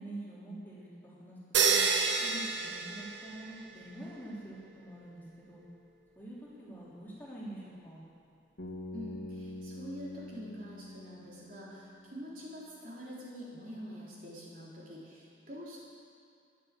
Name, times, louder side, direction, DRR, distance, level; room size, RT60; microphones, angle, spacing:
voice 1, 0.0-1.4 1.7-1.8 2.2-5.6 6.1-8.0, right 1 dB, 10° left, -8 dB, 3.3 m, -46 dB
sound 1, 1.5-3.7, right 5 dB, 70° right, 1.3 m, -29 dB
Bass guitar, 8.6-12.6, left 1 dB, 65° left, 2.3 m, -45 dB
voice 2, 8.9-15.8, equal, 45° right, -6 dB, 3.8 m, -45 dB
14.5 x 11.5 x 7.5 m, 2.3 s
head